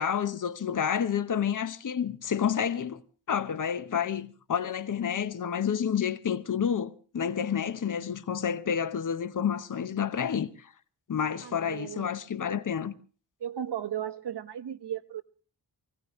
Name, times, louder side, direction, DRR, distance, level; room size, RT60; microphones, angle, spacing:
voice 1, 0.0-3.0 3.3-10.7 11.1-12.9, left 8 dB, 50° left, 1.1 m, -29 dB
voice 2, 11.4-12.1 13.4-15.2, right 10 dB, 85° right, 1.2 m, -35 dB
23.5 x 17.0 x 3.1 m
wide cardioid pair, 120°, 40 cm